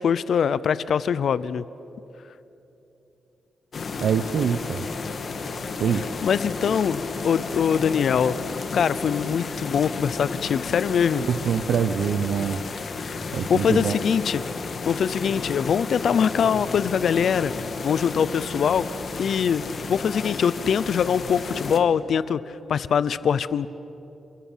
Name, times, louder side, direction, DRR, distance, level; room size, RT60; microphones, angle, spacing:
voice 1, 0.0-1.6 6.2-8.3 8.7-11.2 13.0-13.2 13.5-14.4 14.8-18.9 19.2-19.6 19.9-23.7, left 7 dB, 65° left, 17 dB, 0.6 m, -23 dB
sound 1, 3.7-21.8, left 4 dB, 45° left, 1.8 m, -32 dB
voice 2, 4.0-4.8 5.8-6.0 11.3-12.6 13.3-14.0, right 7 dB, 75° right, 10 dB, 0.9 m, -24 dB
29.5 x 22.5 x 7.4 m, 3.0 s
wide cardioid pair, 150°, 0 cm